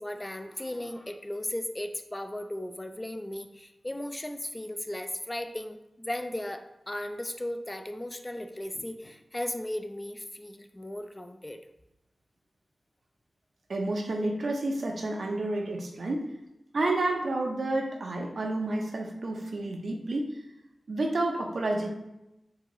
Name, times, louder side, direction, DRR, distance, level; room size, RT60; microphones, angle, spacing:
voice 1, 0.0-11.6, left 1 dB, 20° left, 7 dB, 0.4 m, -36 dB
voice 2, 13.7-16.3 16.7-20.4 20.9-21.9, right 2 dB, 75° right, 2 dB, 0.7 m, -30 dB
4.6 x 3.7 x 3.1 m, 0.91 s
wide cardioid pair, 60°, 0 cm